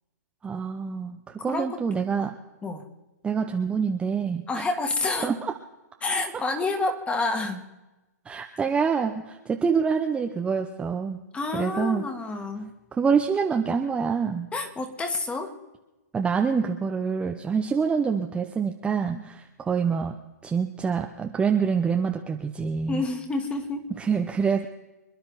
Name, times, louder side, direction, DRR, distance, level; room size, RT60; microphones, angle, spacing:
voice 1, 0.4-2.4 3.2-4.5 5.2-5.5 8.2-11.2 11.5-12.0 12.9-14.5 16.1-20.2 20.4-23.0 24.0-24.7, right 6 dB, 10° right, 3 dB, 0.8 m, -26 dB
voice 2, 1.5-2.3 2.6-2.8 4.5-5.3 6.0-7.7 11.3-12.7 14.5-15.5 19.1-19.2 22.9-23.8, left 3 dB, 10° left, 6 dB, 2.0 m, -29 dB
26.5 x 10.5 x 4.0 m, 1.1 s
hypercardioid pair, 130°, 9 cm